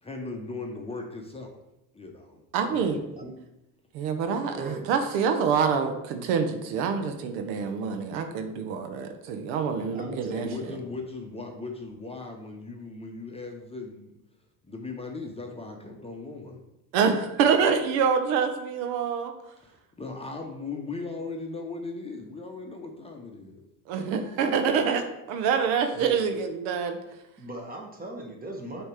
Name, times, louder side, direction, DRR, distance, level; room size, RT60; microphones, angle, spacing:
voice 1, 0.0-1.5 1.9-2.4 2.7-3.3 10.4-14.2 14.6-16.6 19.6-23.6, left 3 dB, 15° left, 1 dB, 0.8 m, -38 dB
voice 2, 2.5-3.0 3.9-10.5 16.9-19.3 23.9-27.0, right 6 dB, 80° right, 6 dB, 0.8 m, -26 dB
voice 3, 4.5-4.9 9.9-10.9 25.9-26.2 27.4-28.8, right 2 dB, 20° right, 1 dB, 1.4 m, -38 dB
6.4 x 3.0 x 4.8 m, 0.88 s
supercardioid pair, 90°, 42 cm